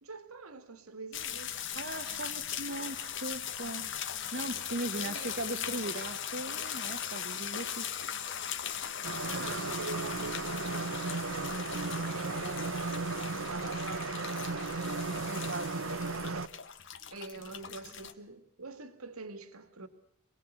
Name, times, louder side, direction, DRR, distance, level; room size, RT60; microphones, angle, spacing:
voice 1, 0.0-1.6 4.9-5.9 9.2-11.4 11.9-14.6 17.1-19.9, right 3 dB, 80° right, 2.2 m, -45 dB
sound 1, 1.1-18.1, left 9 dB, 55° left, 1.4 m, -39 dB
voice 2, 1.7-3.9 4.3-8.1 12.0-12.8 14.9-16.1, right 2 dB, 50° right, 1.2 m, -39 dB
sound 2, 9.0-16.5, right 3 dB, 65° right, 1.0 m, -35 dB
26.5 x 19.5 x 8.3 m
head